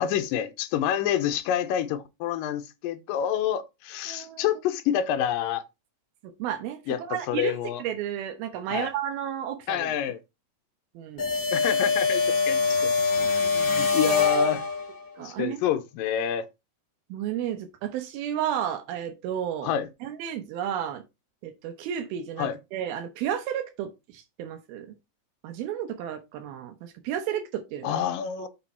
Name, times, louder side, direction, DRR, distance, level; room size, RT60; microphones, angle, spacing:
voice 1, 0.0-5.6 6.9-7.8 8.7-8.9 9.7-10.2 11.5-12.9 13.5-14.7 15.2-16.5 19.6-19.9 22.4-22.6 27.8-28.5, left 9 dB, 75° left, 2.4 m, -28 dB
voice 2, 4.1-4.5 6.2-7.5 7.8-9.9 11.0-11.3 13.2-13.3 15.2-15.6 17.1-19.7 20.0-21.0 21.4-24.9 25.4-28.0 28.4-28.5, right 10 dB, 85° right, 2.8 m, -32 dB
sound 1, 11.2-15.1, left 4 dB, 30° left, 2.2 m, -24 dB
6.8 x 5.7 x 4.3 m
omnidirectional pair, 4.2 m